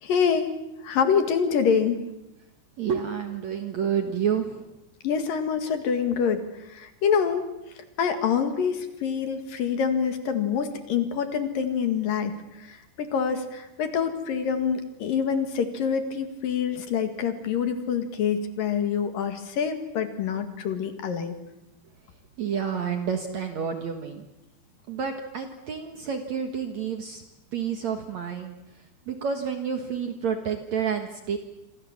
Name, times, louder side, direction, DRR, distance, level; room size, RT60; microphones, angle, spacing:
voice 1, 0.0-0.5 0.8-2.0 5.0-6.4 6.7-7.5 8.0-21.4, left 7 dB, 60° left, 8 dB, 3.3 m, -26 dB
voice 2, 2.8-4.8 22.4-24.3 24.9-27.2 27.5-31.4, right 7 dB, 55° right, 6 dB, 2.2 m, -29 dB
27.0 x 26.0 x 7.4 m, 0.92 s
omnidirectional pair, 4.8 m